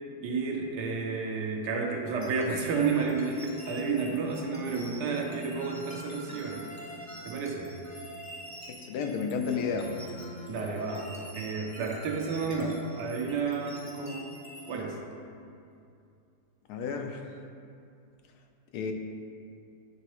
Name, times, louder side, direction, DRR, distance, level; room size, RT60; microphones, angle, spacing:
voice 1, 0.2-6.6 7.2-7.7 10.5-14.3 14.7-15.0, right 4 dB, 85° right, 0 dB, 1.4 m, -31 dB
sound 1, 2.2-14.8, equal, 15° left, 0.6 m, -45 dB
voice 2, 8.7-9.9 16.7-17.3 18.7-18.9, left 5 dB, 75° left, 4 dB, 1.1 m, -32 dB
10.0 x 3.8 x 3.0 m, 2.5 s
omnidirectional pair, 1.8 m